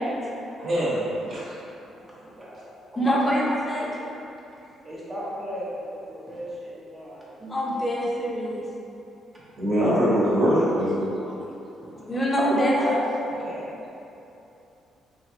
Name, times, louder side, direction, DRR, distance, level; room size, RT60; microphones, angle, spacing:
voice 1, 0.6-1.4 9.6-11.0, equal, 60° right, -10 dB, 0.9 m, -22 dB
voice 2, 2.2-2.7 3.0-3.2 4.8-7.8 9.3-9.4 11.8-12.0 12.7-13.0 13.2-13.7, equal, 25° right, -7 dB, 0.6 m, -36 dB
voice 3, 3.0-3.9 7.5-8.6 11.3-11.4 11.9-13.0, equal, 25° left, -4 dB, 0.6 m, -24 dB
2.9 x 2.5 x 2.8 m, 2.8 s
cardioid pair, 90°, 0 cm